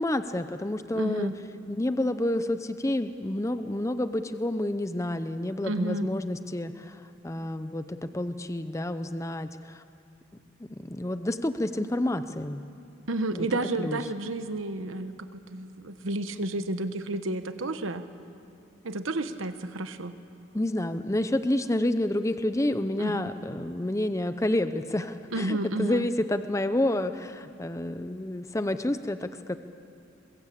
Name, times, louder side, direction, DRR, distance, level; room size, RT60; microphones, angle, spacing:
voice 1, 0.0-1.3 1.7-9.8 10.7-12.6 13.3-13.5 13.8-14.0 20.5-29.6, left 1 dB, 15° left, 10 dB, 0.6 m, -29 dB
voice 2, 1.0-1.3 5.6-6.1 13.1-18.0 18.8-20.1 23.0-23.3 25.3-26.1, right 2 dB, 85° right, 10 dB, 1.1 m, -31 dB
23.0 x 22.0 x 8.5 m, 2.8 s
head